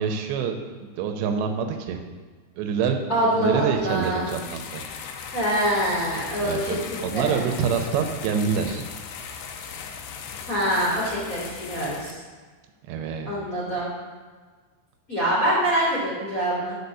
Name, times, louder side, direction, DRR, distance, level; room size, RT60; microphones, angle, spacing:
voice 1, 0.0-2.0 2.6-4.8 6.4-8.8 12.8-13.3, right 6 dB, 85° right, 5 dB, 2.9 m, -26 dB
voice 2, 3.1-4.3 5.3-7.4 10.5-12.2 13.3-13.9 15.1-16.8, equal, 25° left, -8 dB, 2.0 m, -25 dB
sound 1, 3.7-12.1, left 6 dB, 80° left, 2.7 m, -38 dB
11.0 x 4.2 x 6.8 m, 1.4 s
omnidirectional pair, 5.1 m